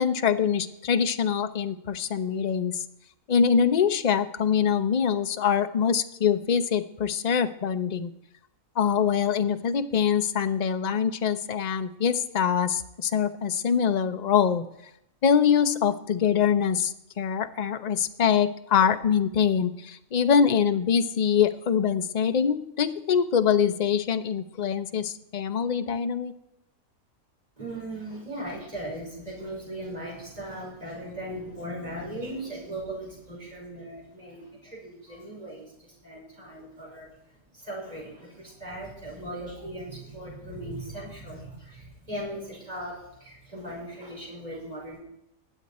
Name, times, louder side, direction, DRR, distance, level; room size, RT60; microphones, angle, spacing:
voice 1, 0.0-2.8 3.3-8.1 8.8-14.6 15.2-26.3, left 7 dB, 45° left, 10 dB, 0.6 m, -24 dB
voice 2, 27.6-37.1 37.5-45.0, right 1 dB, 25° right, -4 dB, 5.5 m, -38 dB
21.0 x 7.8 x 4.2 m, 0.81 s
omnidirectional pair, 1.5 m